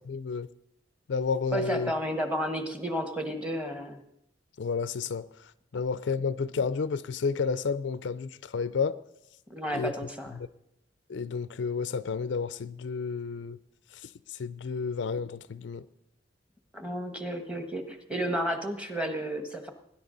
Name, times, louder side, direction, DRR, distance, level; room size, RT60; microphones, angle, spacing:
voice 1, 0.1-0.5 1.1-1.9 4.6-5.2 5.7-9.0 9.7-9.9 10.4-10.5 11.1-13.6 13.9-15.8, left 5 dB, 65° left, 0.4 m, -31 dB
voice 2, 1.5-4.0 9.5-10.4 16.7-19.7, equal, 5° right, 1.2 m, -32 dB
20.0 x 10.5 x 3.9 m
head